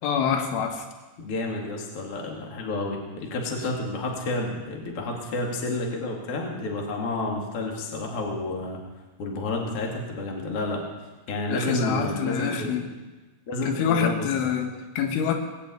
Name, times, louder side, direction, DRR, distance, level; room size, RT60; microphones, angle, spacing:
voice 1, 0.0-0.9 11.5-12.9 13.6-15.3, left 7 dB, 85° left, 4 dB, 3.8 m, -26 dB
voice 2, 1.2-8.8 9.2-10.8 11.3-12.7 13.5-14.5, left 2 dB, 40° left, 0 dB, 2.4 m, -30 dB
20.0 x 7.0 x 8.7 m, 1.2 s
omnidirectional pair, 5.4 m